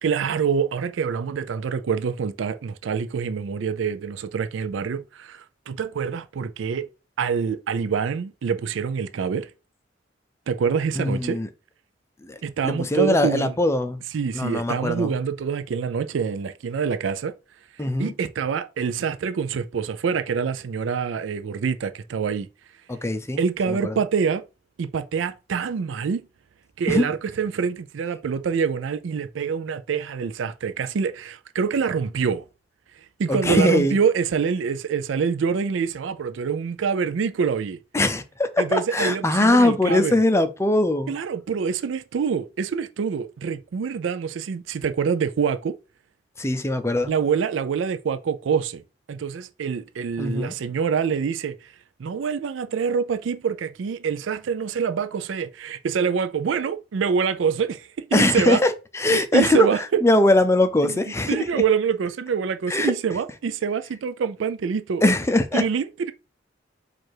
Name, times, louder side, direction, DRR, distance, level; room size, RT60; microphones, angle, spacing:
voice 1, 0.0-6.9 7.2-9.5 10.5-11.4 12.4-13.5 14.1-17.3 18.0-22.5 23.4-24.4 24.8-26.3 26.8-32.4 33.2-37.8 38.6-40.2 41.1-45.7 47.1-48.8 49.1-51.7 52.0-58.6 59.1-60.0 60.8-61.0 61.3-65.0 65.5-66.1, right 6 dB, 85° right, 0.4 m, -25 dB
voice 2, 11.0-11.5 12.2-12.4 12.6-14.0 14.3-15.2 17.8-18.1 22.9-23.4 23.7-24.0 26.9-27.1 33.3-34.0 37.9-41.1 46.4-47.1 50.2-50.5 58.1-59.7 60.0-61.6 62.7-62.9 65.0-65.6, left 2 dB, 15° left, 0.5 m, -21 dB
4.7 x 2.5 x 4.4 m
head